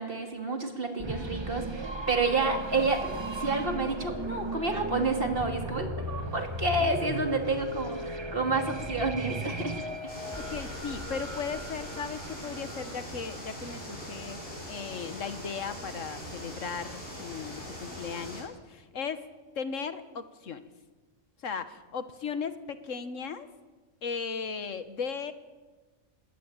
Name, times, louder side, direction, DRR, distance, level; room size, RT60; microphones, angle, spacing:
voice 1, 0.0-9.8 10.0-10.1, right 3 dB, 45° right, 4 dB, 3.0 m, -29 dB
sound 1, 1.0-13.7, right 1 dB, 20° right, 1.5 m, -37 dB
sound 2, 10.1-18.4, equal, 45° left, 7.7 m, -41 dB
voice 2, 10.4-14.4 14.6-19.2 19.5-20.7 21.4-23.5 24.0-25.3, left 6 dB, 80° left, 11 dB, 1.7 m, -37 dB
20.5 x 19.0 x 9.0 m, 1.3 s
omnidirectional pair, 1.3 m